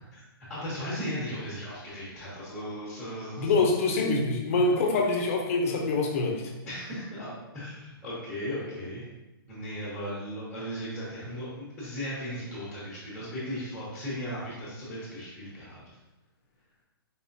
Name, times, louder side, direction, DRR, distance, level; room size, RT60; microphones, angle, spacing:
voice 1, 0.5-3.5 6.6-9.1 9.5-15.8, equal, 5° left, -8 dB, 1.1 m, -36 dB
voice 2, 3.4-6.4, left 3 dB, 35° left, 1 dB, 0.7 m, -25 dB
4.3 x 3.5 x 2.7 m, 1.0 s
hypercardioid pair, 165°, 13 cm